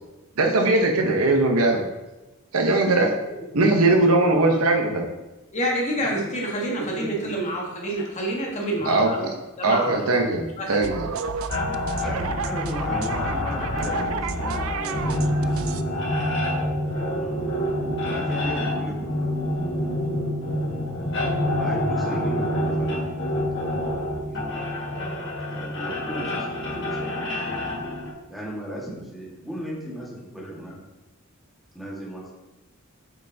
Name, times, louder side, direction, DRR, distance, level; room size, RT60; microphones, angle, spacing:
voice 1, 0.4-1.9 2.5-3.1 3.5-5.1 8.9-9.3 9.6-11.1, right 2 dB, 85° right, 3 dB, 0.8 m, -20 dB
voice 2, 3.6-4.4 6.0-6.1 6.7-7.4 12.0-15.8 17.1-17.4 18.1-19.3 20.5-20.6 21.5-23.0 24.3-24.6 25.5-27.6 28.3-30.8 31.7-32.3, equal, ahead, -6 dB, 1.6 m, -36 dB
voice 3, 5.5-9.3 9.6-10.1 10.6-10.8, right 1 dB, 35° left, -2 dB, 1.3 m, -27 dB
sound 1, 10.8-15.8, right 5 dB, 70° right, 0.3 m, -32 dB
sound 2, 11.5-28.1, left 1 dB, 55° left, 1.5 m, -27 dB
7.2 x 5.4 x 2.7 m, 1.1 s
head